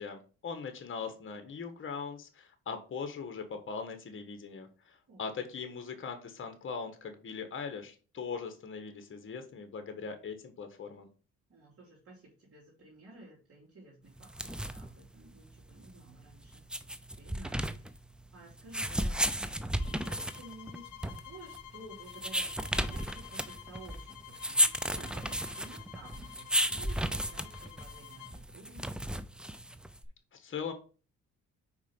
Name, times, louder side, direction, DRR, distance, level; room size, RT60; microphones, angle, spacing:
voice 1, 0.0-11.1 30.3-30.7, left 5 dB, 45° left, 7 dB, 1.3 m, -40 dB
voice 2, 11.5-16.7 17.2-18.0 18.3-29.3, right 2 dB, 50° right, -4 dB, 2.9 m, -53 dB
sound 1, 14.2-30.1, right 1 dB, 5° right, 0.5 m, -34 dB
sound 2, 19.8-28.4, left 15 dB, 80° left, 0.7 m, -51 dB
4.8 x 4.5 x 5.8 m, 0.36 s
cardioid pair, 90°, 30 cm